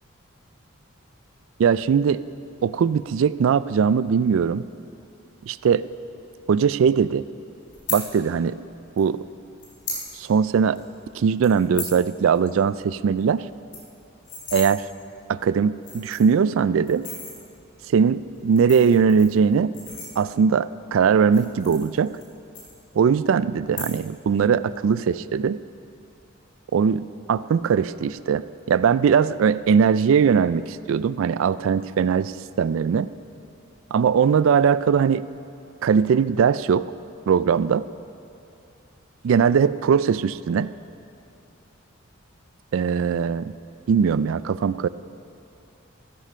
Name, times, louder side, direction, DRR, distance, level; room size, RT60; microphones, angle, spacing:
voice 1, 1.6-2.2 2.6-4.6 5.4-5.8 6.5-7.2 7.9-8.6 9.0-9.2 10.1-10.8 11.1-13.4 14.5-14.8 15.3-17.1 17.9-19.7 20.2-22.2 22.9-25.6 26.7-27.0 27.3-32.3 32.6-33.1 33.9-35.2 35.8-36.9 37.3-37.8 39.2-40.7 42.7-43.5 43.9-44.9, right 6 dB, 70° right, 17 dB, 0.3 m, -20 dB
sound 1, 7.7-8.0 9.0-9.1 9.6-10.0 10.4-10.5 10.7-11.0 11.4-12.0 12.3-12.5 12.8-12.9 13.2-13.3 13.5-14.7 15.4-15.5 15.8-16.4 16.9-17.4 18.3-20.5 21.2-22.3 22.5-23.2 23.6-24.2 24.5-24.9, left 3 dB, 60° left, 4.0 m, -35 dB
16.0 x 10.0 x 5.6 m, 2.7 s
head